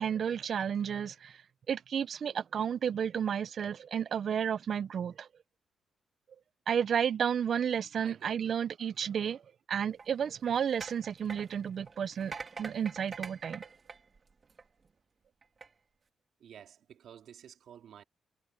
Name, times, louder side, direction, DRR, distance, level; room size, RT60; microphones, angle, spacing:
voice 1, 0.0-1.4 1.7-5.3 6.7-9.4 9.7-13.6, right 8 dB, 45° right, 0.4 m, -32 dB
voice 2, 8.0-8.6 13.0-13.4 16.4-18.0, right 9 dB, 65° right, 2.7 m, -53 dB
sound 1, 9.9-14.9 15.4-15.7, right 4 dB, 30° right, 2.0 m, -45 dB
wide cardioid pair, 165°, 0 cm